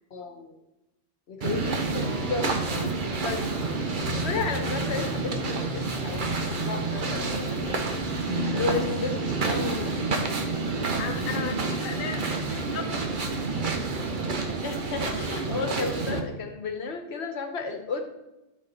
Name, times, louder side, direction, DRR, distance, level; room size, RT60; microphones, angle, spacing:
voice 1, 0.1-0.5 1.3-9.9 14.4-18.1, left 4 dB, 70° left, 5 dB, 1.2 m, -34 dB
sound 1, 1.4-16.2, right 3 dB, 50° right, 1.0 m, -29 dB
sound 2, 2.0-5.8, equal, 30° left, 2.4 m, -45 dB
sound 3, 4.0-14.7, left 1 dB, 85° left, 1.2 m, -37 dB
voice 2, 11.0-13.3, left 6 dB, 50° left, 3 dB, 0.9 m, -36 dB
12.5 x 4.3 x 4.2 m, 0.97 s
omnidirectional pair, 1.2 m